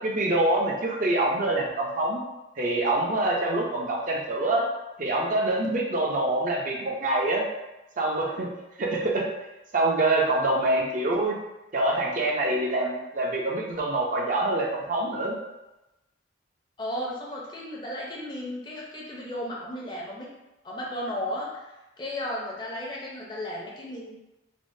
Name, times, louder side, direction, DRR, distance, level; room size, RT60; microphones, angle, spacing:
voice 1, 0.0-2.2 2.6-4.7 5.0-7.5 8.0-8.5 8.8-9.2 9.7-11.4 11.7-15.4, right 2 dB, 45° right, -2 dB, 0.4 m, -25 dB
voice 2, 16.8-20.3 20.6-24.1, left 1 dB, 25° left, -3 dB, 0.5 m, -34 dB
3.4 x 2.0 x 2.6 m, 0.98 s
head